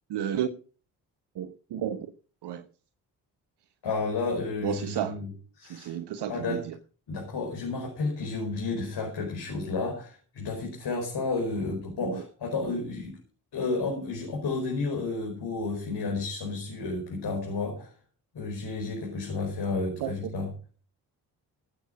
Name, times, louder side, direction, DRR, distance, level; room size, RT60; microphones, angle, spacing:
voice 1, 0.1-0.5 1.4-2.1 2.4-2.6 4.6-5.2 5.7-6.7 12.0-12.2 20.0-20.1, right 9 dB, 65° right, 1.1 m, -32 dB
voice 2, 3.8-5.3 5.6-6.0 6.3-6.6 7.1-13.2 13.5-17.9 18.3-20.5, left 3 dB, 60° left, 5.2 m, -31 dB
18.0 x 8.6 x 5.1 m
hypercardioid pair, 45°, 44 cm